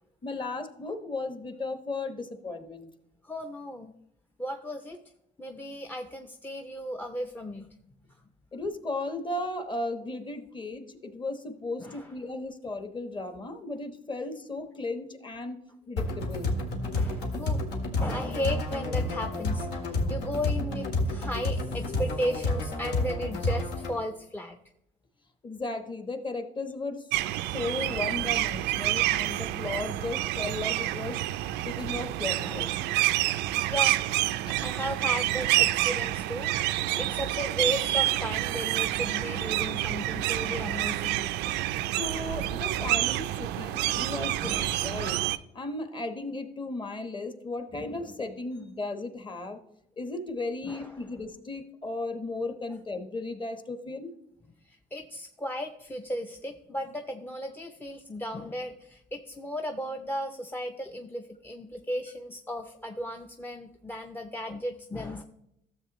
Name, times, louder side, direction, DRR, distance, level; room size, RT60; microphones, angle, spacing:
voice 1, 0.2-2.9 8.5-15.6 15.9-16.5 25.4-27.0 27.5-31.2 31.6-32.7 42.0-45.2 45.5-49.6 50.0-54.1, left 2 dB, 30° left, 8 dB, 1.1 m, -35 dB
voice 2, 3.2-3.9 4.4-5.0 5.4-7.7 11.8-12.1 16.9-17.7 18.0-24.6 27.4-27.5 27.9-28.1 32.4-32.9 33.7-34.0 34.6-41.2 44.4-45.0 50.6-51.1 54.6-65.2, equal, 10° left, 7 dB, 0.5 m, -35 dB
sound 1, 16.0-24.0, left 2 dB, 80° left, 1.8 m, -30 dB
sound 2, 27.1-45.4, right 15 dB, 90° right, 0.4 m, -28 dB
13.0 x 7.3 x 3.0 m, 0.79 s
cardioid pair, 110°, 17 cm